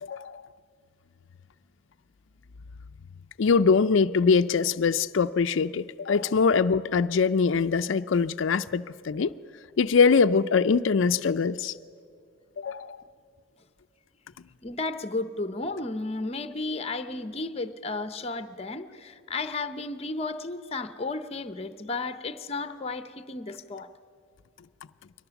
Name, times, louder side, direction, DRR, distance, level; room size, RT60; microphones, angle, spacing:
voice 1, 0.0-0.4 3.4-9.3 9.8-11.7 12.6-13.0, left 5 dB, 65° left, 0.4 m, -23 dB
voice 2, 14.6-23.9, left 3 dB, 30° left, 0.7 m, -33 dB
22.5 x 18.5 x 7.0 m
head